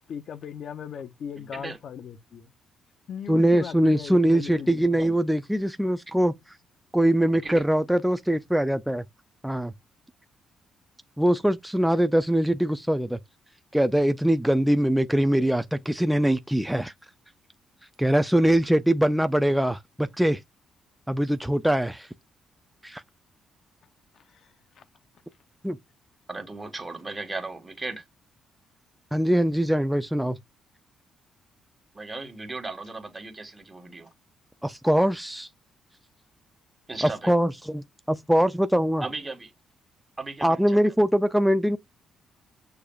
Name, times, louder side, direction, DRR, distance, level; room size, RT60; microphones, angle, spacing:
voice 1, 0.1-2.5 3.1-4.8 24.1-24.8, left 7 dB, 60° left, 0.6 m, -38 dB
voice 2, 1.3-1.8 5.0-5.2 7.3-7.6 26.3-28.0 31.9-34.1 36.9-37.3 39.0-39.5 40.2-40.8, right 3 dB, 20° right, 1.3 m, -36 dB
voice 3, 3.3-6.6 6.9-9.0 9.4-9.7 11.2-13.2 13.7-16.8 18.0-20.4 21.1-22.1 22.8-23.0 25.6-25.8 29.1-30.4 34.6-35.5 37.0-39.0 40.4-41.8, right 1 dB, 5° right, 0.3 m, -22 dB
6.6 x 2.3 x 2.3 m
cardioid pair, 90°, 0 cm